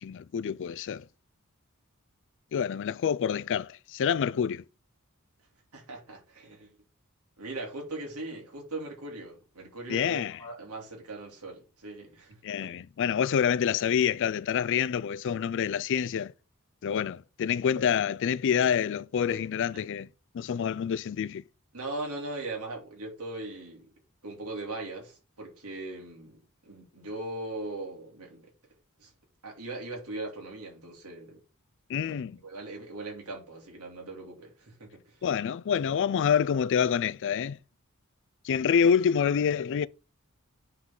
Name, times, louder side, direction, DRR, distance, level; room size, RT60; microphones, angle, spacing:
voice 1, 0.0-1.0 2.5-4.6 9.9-10.4 12.4-16.3 16.8-20.1 20.3-21.4 31.9-32.4 35.2-37.6 38.4-39.9, left 7 dB, 55° left, 0.3 m, -27 dB
voice 2, 5.7-6.7 7.4-12.7 19.3-19.4 19.7-19.8 21.7-23.9 24.2-26.4 26.7-28.4 29.0-29.1 29.4-31.4 32.1-35.2, right 2 dB, 90° right, 2.8 m, -40 dB
9.7 x 3.9 x 3.8 m
head